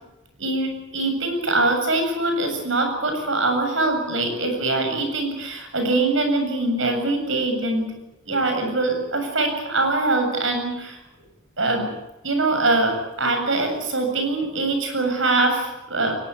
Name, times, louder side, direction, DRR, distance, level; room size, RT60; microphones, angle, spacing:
voice 1, 0.4-7.9 8.3-11.0 11.6-11.9 12.2-16.1, right 2 dB, 65° right, 5 dB, 7.6 m, -23 dB
23.0 x 20.5 x 8.5 m, 0.97 s
head